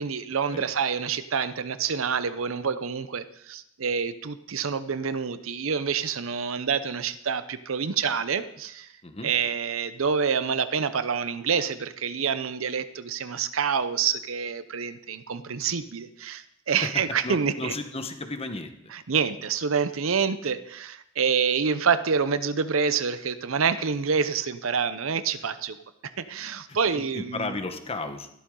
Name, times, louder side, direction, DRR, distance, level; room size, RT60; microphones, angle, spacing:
voice 1, 0.0-8.9 9.2-17.7 18.9-25.8 26.2-27.5, right 6 dB, 70° right, 13 dB, 0.7 m, -27 dB
voice 2, 17.2-18.7 26.7-28.3, left 2 dB, 30° left, 7 dB, 1.1 m, -34 dB
14.0 x 12.5 x 3.8 m, 0.76 s
head